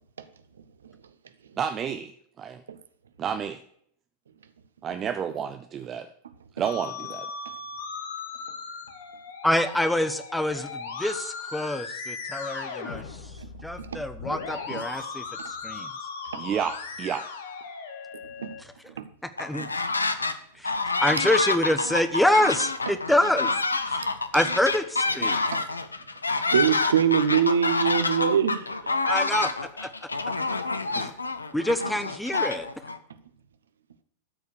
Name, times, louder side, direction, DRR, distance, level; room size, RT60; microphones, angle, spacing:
voice 1, 1.6-2.1 2.4-2.6 3.2-3.6 4.8-6.1 6.6-7.3 16.3-17.2, right 8 dB, 25° right, 0.6 m, -30 dB
Musical instrument, 6.6-18.6, left 5 dB, 60° left, 1.3 m, -38 dB
voice 2, 9.4-13.3 13.6-15.9 18.6-18.9 19.4-19.7 20.5-23.5 23.9-24.0 24.3-25.4 29.1-29.9 30.9-31.1 31.5-32.7, left 1 dB, 5° left, 0.8 m, -26 dB
sound 1, 19.4-20.4 20.6-33.0, left 3 dB, 80° left, 0.6 m, -27 dB
voice 3, 26.5-29.0, right 8 dB, 65° right, 0.7 m, -24 dB
12.5 x 4.8 x 6.4 m
figure-of-eight pair, 90°, 0 cm